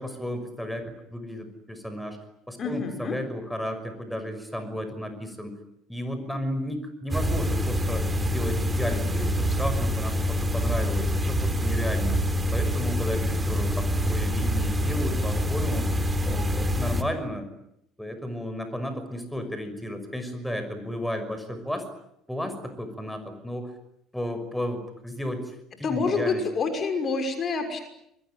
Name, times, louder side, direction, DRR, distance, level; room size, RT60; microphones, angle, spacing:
voice 1, 0.0-2.2 2.5-5.5 5.9-12.2 12.5-15.9 16.2-17.5 18.0-21.8 22.3-23.7 24.1-26.4, equal, 5° left, 8 dB, 6.0 m, -33 dB
voice 2, 2.6-3.2 25.8-27.8, left 4 dB, 40° left, 6 dB, 6.0 m, -27 dB
sound 1, 7.1-17.0, equal, 20° right, 3.7 m, -26 dB
28.0 x 22.5 x 9.2 m, 0.79 s
figure-of-eight pair, 60°, 0 cm